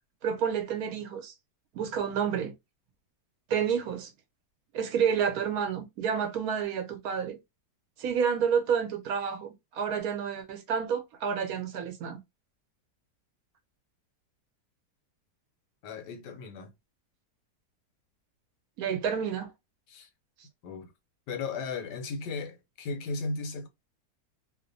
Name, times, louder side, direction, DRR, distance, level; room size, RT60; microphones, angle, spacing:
voice 1, 0.2-1.3 1.7-2.5 3.5-4.1 4.7-7.4 8.0-12.2 18.8-19.5, right 7 dB, 70° right, 1.0 m, -29 dB
voice 2, 15.8-16.7 19.9-20.1 20.6-20.9 21.3-23.7, left 4 dB, 90° left, 1.2 m, -36 dB
2.8 x 2.1 x 2.5 m
omnidirectional pair, 1.8 m